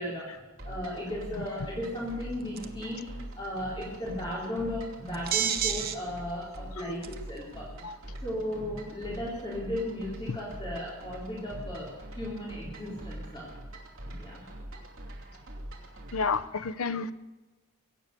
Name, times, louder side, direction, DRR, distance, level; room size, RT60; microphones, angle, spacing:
voice 1, 0.0-3.1 3.3-7.7 8.2-11.9 12.2-13.5 14.0-14.6, left 1 dB, 20° left, -6 dB, 3.7 m, -36 dB
sound 1, 0.6-16.5, right 1 dB, 60° right, 2.6 m, -44 dB
sound 2, 2.6-2.8 5.1-6.0 6.6-6.7 7.0-7.4, right 9 dB, 45° right, 1.0 m, -28 dB
voice 2, 16.1-17.1, left 4 dB, 75° left, 14 dB, 0.7 m, -30 dB
22.5 x 9.0 x 6.8 m, 1.2 s
head